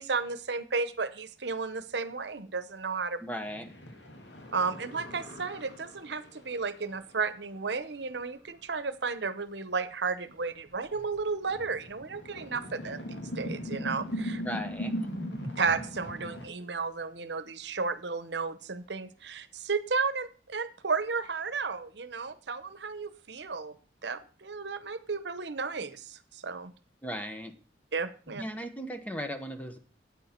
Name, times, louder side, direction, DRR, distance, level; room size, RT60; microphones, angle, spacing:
voice 1, 0.0-3.2 4.5-14.4 15.6-23.7 24.0-26.7 27.9-28.4, right 4 dB, 80° right, 14 dB, 0.9 m, -33 dB
voice 2, 3.2-3.7 14.4-15.0 27.0-27.6 28.4-29.8, equal, 10° left, 7 dB, 1.0 m, -37 dB
sound 1, 3.4-7.3 8.4-8.5 10.4-10.5 10.8-16.5, equal, 90° left, 2.4 m, -39 dB
9.0 x 8.8 x 4.4 m, 0.39 s
head